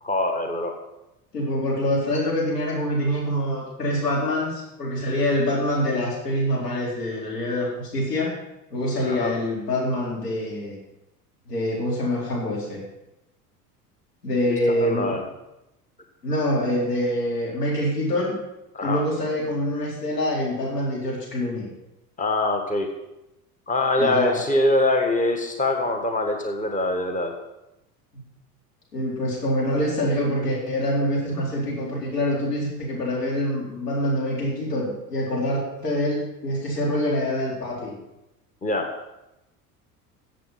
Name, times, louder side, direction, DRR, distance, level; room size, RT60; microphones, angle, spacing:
voice 1, 0.0-0.8 9.0-9.3 14.5-15.2 18.7-19.0 22.2-22.9 23.7-27.3 38.6-38.9, left 2 dB, 15° left, 4 dB, 1.6 m, -24 dB
voice 2, 1.3-8.3 8.7-10.8 11.5-12.8 14.2-15.2 16.2-18.3 18.8-21.7 24.0-24.4 28.9-37.9, left 1 dB, 80° left, -3 dB, 4.2 m, -25 dB
15.0 x 7.6 x 5.8 m, 0.92 s
figure-of-eight pair, 70°, 47 cm